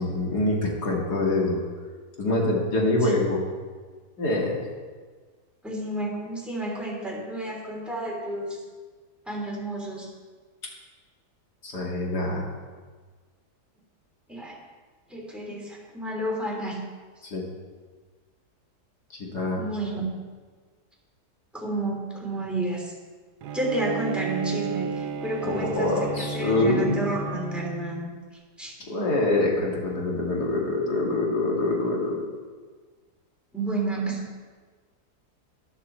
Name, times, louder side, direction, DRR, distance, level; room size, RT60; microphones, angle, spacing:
voice 1, 0.0-1.6 2.2-3.4 4.2-4.6 11.6-12.5 17.2-17.4 19.1-19.6 25.4-27.0 28.8-32.2, left 2 dB, 75° left, -2 dB, 2.8 m, -25 dB
voice 2, 5.6-8.6 9.3-10.1 14.3-14.6 15.1-16.8 19.5-20.0 21.5-22.9 23.5-28.1 28.6-28.7 33.5-34.2, right 2 dB, ahead, -3 dB, 3.0 m, -31 dB
Bowed string instrument, 23.4-28.1, right 4 dB, 80° right, 1.3 m, -33 dB
13.0 x 11.0 x 4.4 m, 1.5 s
omnidirectional pair, 1.7 m